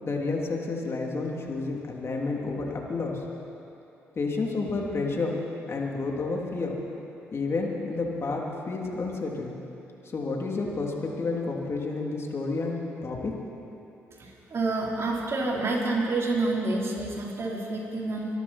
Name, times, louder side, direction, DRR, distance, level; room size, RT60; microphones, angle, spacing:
voice 1, 0.0-3.2 4.1-5.4 5.7-6.7 7.3-9.5 10.1-13.3, left 3 dB, 45° left, -1 dB, 3.1 m, -30 dB
voice 2, 14.2-18.3, right 2 dB, 45° right, -3 dB, 4.2 m, -28 dB
24.5 x 13.0 x 4.4 m, 2.9 s
hypercardioid pair, 50°, 6 cm